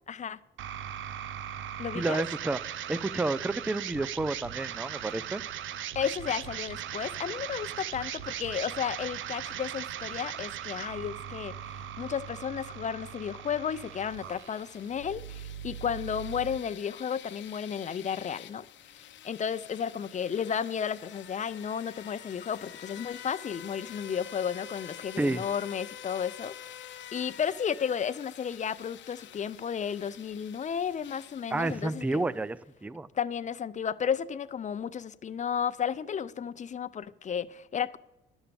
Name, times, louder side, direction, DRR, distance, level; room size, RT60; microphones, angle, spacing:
voice 1, 0.1-0.4 1.8-2.2 5.9-18.7 19.2-32.2 33.1-38.0, left 7 dB, 40° left, 0.6 m, -33 dB
sound 1, 0.6-16.6, right 10 dB, 75° right, 0.6 m, -39 dB
voice 2, 1.9-5.4 25.2-25.4 31.5-33.1, right 2 dB, 5° right, 0.4 m, -30 dB
sound 2, 13.8-32.4, left 10 dB, 70° left, 0.8 m, -48 dB
11.5 x 7.2 x 6.9 m
cardioid pair, 90°, 20 cm